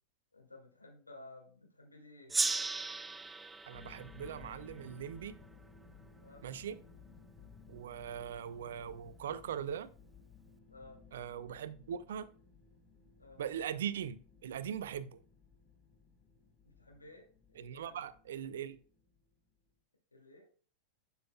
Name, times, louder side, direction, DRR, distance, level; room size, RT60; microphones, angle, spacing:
voice 1, 0.3-2.3 6.2-6.4 10.7-11.0 13.2-13.4 16.6-18.0 20.1-20.5, left 2 dB, 80° left, 2.4 m, -55 dB
Gong, 2.3-5.5, right 3 dB, 10° right, 0.3 m, -37 dB
sound 1, 3.7-19.6, left 5 dB, 20° left, 1.3 m, -58 dB
voice 2, 3.7-5.4 6.4-6.8 7.7-9.9 11.1-12.3 13.4-15.2 17.6-18.8, right 9 dB, 60° right, 0.5 m, -40 dB
11.0 x 5.7 x 2.3 m
figure-of-eight pair, 90°, 0 cm